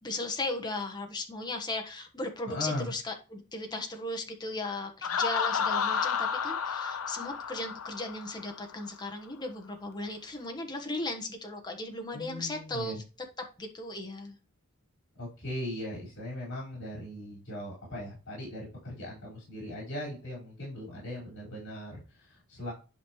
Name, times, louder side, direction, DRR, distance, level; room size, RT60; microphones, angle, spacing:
voice 1, 0.0-13.0 13.6-14.4, left 2 dB, 20° left, 1.3 m, -36 dB
voice 2, 2.5-2.9 12.1-13.0 15.2-22.7, left 1 dB, 55° left, 4.9 m, -39 dB
Laughter, 5.0-8.7, left 6 dB, 75° left, 0.6 m, -31 dB
11.0 x 5.3 x 3.1 m
head